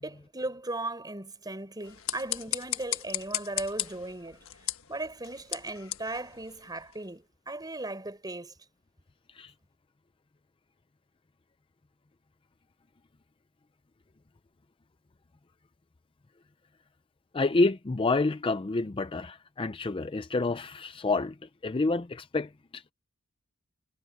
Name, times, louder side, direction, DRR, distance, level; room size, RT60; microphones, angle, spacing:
voice 1, 0.0-4.4 4.9-8.5, right 2 dB, 20° right, 5.0 m, -37 dB
sound 1, 1.8-7.1, left 13 dB, 70° left, 1.4 m, -37 dB
voice 2, 17.3-21.4 21.6-22.8, left 3 dB, 25° left, 0.5 m, -28 dB
head